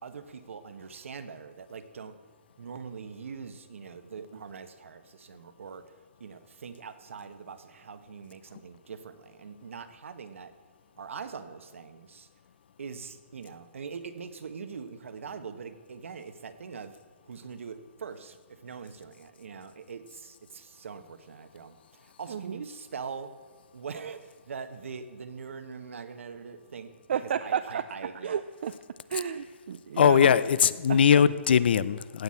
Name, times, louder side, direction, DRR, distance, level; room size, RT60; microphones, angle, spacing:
voice 1, 0.0-2.1 2.6-5.8 6.2-10.5 11.0-12.3 12.8-17.0 17.3-23.3 23.7-28.4, right 5 dB, 75° right, 10 dB, 1.3 m, -42 dB
voice 2, 27.1-27.8 28.2-28.7 29.1-30.3 30.9-31.0, right 8 dB, 55° right, 10 dB, 0.5 m, -31 dB
voice 3, 30.0-32.2, left 7 dB, 50° left, 18 dB, 0.5 m, -21 dB
16.0 x 6.2 x 8.6 m, 1.5 s
hypercardioid pair, 170°, 7 cm